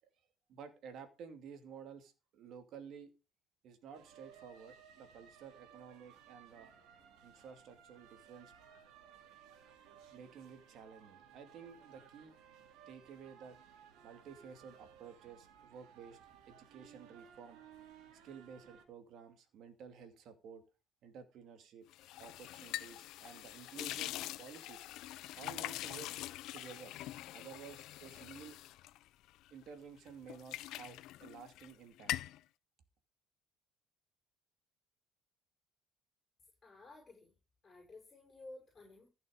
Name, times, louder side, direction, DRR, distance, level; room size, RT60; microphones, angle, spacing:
voice 1, 0.5-3.1 3.6-6.7 7.2-8.5 10.1-12.4 12.9-13.6 14.0-16.2 16.5-17.6 18.2-20.6 21.0-21.9 22.2-24.1 24.4-24.9 25.4-26.1 26.5-26.9 27.3-28.6 29.5-32.1, right 6 dB, 60° right, 8 dB, 2.5 m, -53 dB
sound 1, 3.9-18.8, right 8 dB, 75° right, 2.6 m, -60 dB
sound 2, 21.9-29.7 30.1-31.7 32.0-32.4, left 15 dB, 70° left, 0.6 m, -44 dB
voice 2, 36.6-37.3 37.6-39.1, left 2 dB, 20° left, 0 dB, 6.3 m, -54 dB
15.0 x 6.4 x 5.1 m, 0.30 s
cardioid pair, 120°, 0 cm